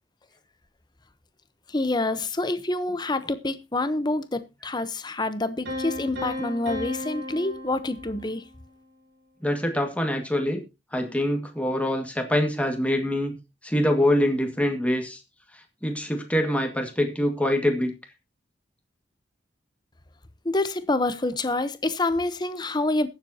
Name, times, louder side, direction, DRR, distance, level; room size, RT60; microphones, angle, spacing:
voice 1, 1.7-8.4 20.4-23.1, left 2 dB, 25° left, 0.9 m, -27 dB
Piano, 5.7-8.5, left 1 dB, 65° right, 5.7 m, -34 dB
voice 2, 9.4-10.6 10.9-13.4 13.6-15.2 15.8-17.9, left 1 dB, 5° left, 1.9 m, -24 dB
21.5 x 7.5 x 2.8 m
head